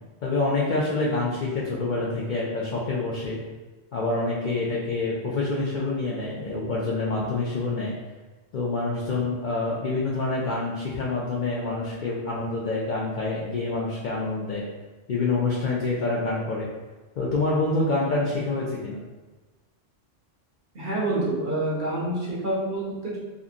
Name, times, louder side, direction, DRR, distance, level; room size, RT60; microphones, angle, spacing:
voice 1, 0.2-3.4 3.9-7.9 8.5-14.6 15.1-16.7 17.2-19.0, left 3 dB, 70° left, -4 dB, 0.4 m, -27 dB
voice 2, 20.7-23.2, right 1 dB, 50° right, -7 dB, 0.7 m, -27 dB
2.7 x 2.5 x 2.4 m, 1.2 s
omnidirectional pair, 1.3 m